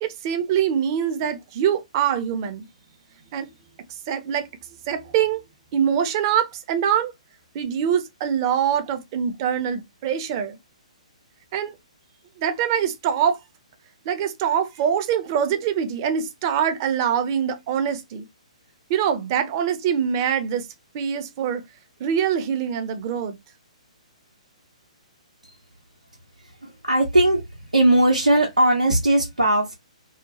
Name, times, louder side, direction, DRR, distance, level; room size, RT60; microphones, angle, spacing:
voice 1, 0.0-2.7 3.3-3.5 3.9-4.5 4.9-5.4 5.7-7.1 7.5-10.6 11.5-11.8 12.4-13.4 14.1-18.3 18.9-20.7 20.9-21.6 22.0-23.4, right 8 dB, 35° right, 0.5 m, -24 dB
voice 2, 26.4-27.4 27.7-29.8, right 1 dB, 85° right, 0.7 m, -19 dB
2.8 x 2.1 x 2.8 m
figure-of-eight pair, 125°, 4 cm